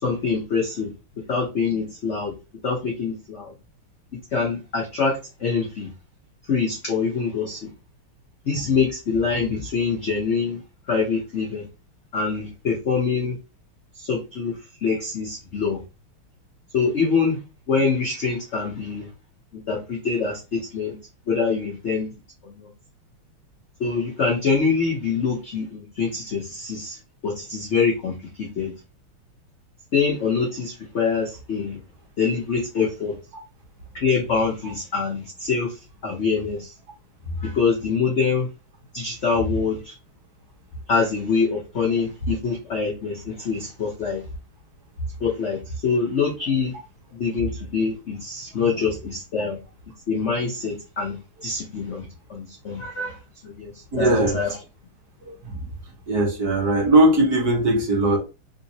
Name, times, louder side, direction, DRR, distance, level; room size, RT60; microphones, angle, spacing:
voice 1, 0.0-0.9 1.3-2.3 2.6-3.5 4.3-5.9 6.5-7.6 8.5-10.6 10.9-11.6 12.1-13.4 14.0-15.8 16.7-17.4 17.7-19.1 19.5-20.9 21.3-22.1 22.4-22.7 23.8-27.0 27.2-28.1 28.4-28.7 29.9-31.8 32.2-33.1 33.9-35.7 36.0-36.7 37.4-38.5 38.9-39.9 40.9-44.2 45.2-46.7 47.1-49.6 50.1-51.2 51.4-52.0 52.3-53.2 53.4-54.5, left 5 dB, 80° left, -1 dB, 0.6 m, -25 dB
voice 2, 53.9-54.4 55.2-55.7 56.1-58.2, right 1 dB, 50° right, -2 dB, 1.5 m, -19 dB
3.5 x 2.9 x 2.7 m, 0.28 s
omnidirectional pair, 2.3 m